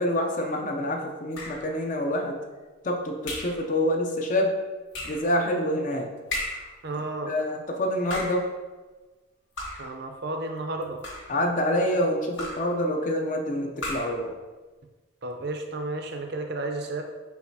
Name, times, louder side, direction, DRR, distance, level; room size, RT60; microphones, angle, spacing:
voice 1, 0.0-2.4 2.8-4.5 5.0-6.1 6.9-8.5 11.3-14.3, left 1 dB, 40° left, 2 dB, 0.5 m, -27 dB
sound 1, 1.3-1.8 3.2-3.6 4.9-5.3 6.3-6.8 7.9-8.5 9.6-10.0 10.8-11.4 12.4-12.8 13.8-14.2, left 1 dB, 65° left, 0.9 m, -35 dB
voice 2, 6.8-7.3 9.8-11.0 15.2-17.0, right 2 dB, 50° right, 4 dB, 0.5 m, -32 dB
4.8 x 4.0 x 2.7 m, 1.3 s
head